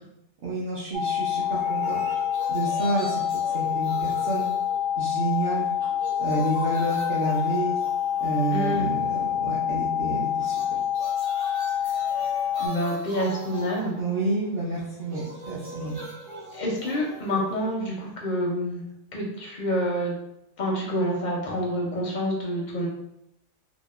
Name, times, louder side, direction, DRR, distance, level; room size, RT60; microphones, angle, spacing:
voice 1, 0.4-2.0 2.5-3.2 3.5-4.5 5.0-5.7 6.2-7.8 8.2-10.8 14.0-16.0, right 2 dB, 60° right, -7 dB, 0.7 m, -29 dB
sound 1, 0.9-12.7, left 9 dB, 80° right, 1.0 m, -27 dB
sound 2, 1.4-5.4 5.7-9.4 10.4-18.4, right 2 dB, 35° right, 0.4 m, -41 dB
voice 2, 8.5-8.8 12.6-13.9 16.5-18.8 19.1-20.1 20.6-22.9, equal, 55° left, -2 dB, 0.5 m, -27 dB
2.8 x 2.0 x 2.3 m, 0.80 s
omnidirectional pair, 1.2 m